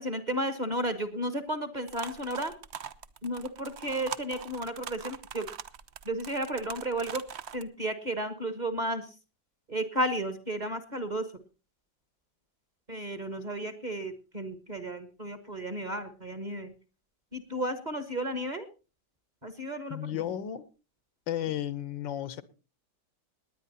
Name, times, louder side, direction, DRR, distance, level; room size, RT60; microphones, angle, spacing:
voice 1, 0.0-2.5 3.2-5.5 6.0-7.2 7.5-9.1 9.7-11.3 12.9-16.7 17.3-18.7 19.4-20.2, right 1 dB, 25° right, 1.2 m, -33 dB
sound 1, 1.9-7.6, right 8 dB, 60° right, 0.7 m, -42 dB
voice 2, 19.9-20.7 21.3-22.4, left 11 dB, 80° left, 1.6 m, -33 dB
19.5 x 9.7 x 4.1 m
omnidirectional pair, 2.0 m